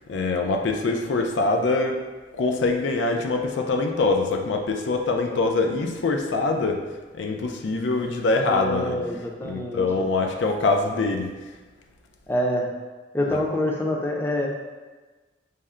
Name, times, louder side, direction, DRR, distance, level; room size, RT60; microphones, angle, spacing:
voice 1, 0.1-2.0 2.4-6.8 7.1-9.0 9.4-11.3 13.3-13.4, left 3 dB, 80° left, 3 dB, 0.4 m, -24 dB
voice 2, 8.4-10.0 12.3-12.7 13.1-14.5, left 1 dB, 10° left, -2 dB, 0.5 m, -26 dB
5.5 x 2.1 x 3.6 m, 1.3 s
head